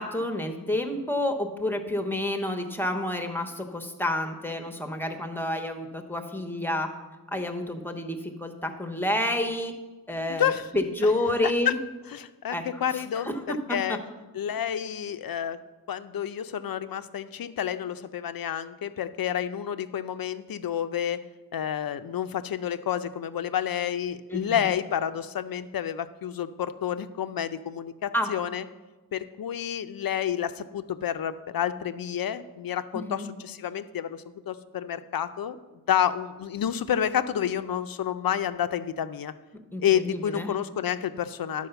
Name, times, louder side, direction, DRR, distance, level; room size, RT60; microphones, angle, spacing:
voice 1, 0.0-6.9 7.3-9.7 10.1-10.5 10.7-11.8 12.5-12.6 12.9-13.4 13.7-13.8 24.3-24.7 28.1-28.3 32.9-33.3 39.7-40.5, left 1 dB, 5° left, 5 dB, 0.9 m, -29 dB
voice 2, 10.3-10.7 11.4-11.7 12.1-14.0 14.3-15.6 15.9-21.2 21.5-28.6 29.1-35.6 35.9-39.3 39.8-41.7, left 9 dB, 75° left, 12 dB, 0.6 m, -29 dB
11.0 x 4.9 x 6.8 m, 1.2 s
wide cardioid pair, 125°, 36 cm